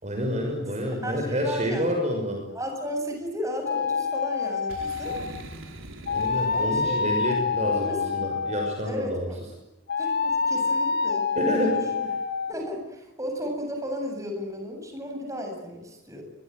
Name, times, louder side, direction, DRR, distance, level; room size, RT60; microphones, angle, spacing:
voice 1, 0.0-2.5 6.1-9.3 11.4-11.9, equal, 35° right, 2 dB, 6.1 m, -28 dB
voice 2, 0.6-1.9 2.5-5.2 6.5-7.2 7.6-8.0 8.8-9.4 10.0-11.3 11.6-12.1 12.5-16.2, equal, 15° right, 3 dB, 7.8 m, -34 dB
sound 1, 3.7-5.4 6.1-9.0 9.9-12.5, left 5 dB, 55° left, 2.3 m, -27 dB
Boom, 4.7-7.4, right 1 dB, 85° right, 4.4 m, -42 dB
25.0 x 22.5 x 9.3 m, 0.95 s
head